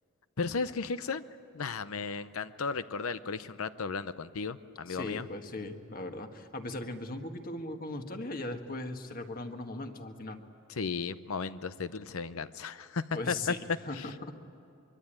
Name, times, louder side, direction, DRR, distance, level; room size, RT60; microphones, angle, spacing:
voice 1, 0.4-1.2 1.5-5.3 10.8-13.5 13.9-14.1, left 4 dB, 85° left, 13 dB, 0.7 m, -35 dB
voice 2, 4.9-10.4 13.1-14.3, left 2 dB, 40° left, 6 dB, 1.5 m, -39 dB
24.5 x 23.5 x 8.9 m, 2.7 s
head